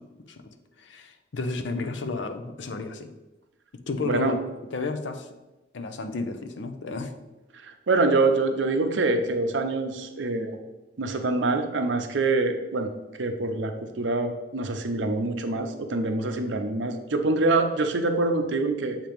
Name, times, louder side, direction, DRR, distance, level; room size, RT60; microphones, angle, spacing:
voice 1, 0.0-3.1 3.9-4.4 4.7-5.3 5.7-7.1, left 3 dB, 75° left, 9 dB, 0.6 m, -32 dB
voice 2, 4.0-4.3 7.5-10.6 11.0-12.9 13.2-19.0, right 3 dB, 80° right, 6 dB, 0.7 m, -25 dB
7.3 x 2.9 x 5.1 m, 1.1 s
head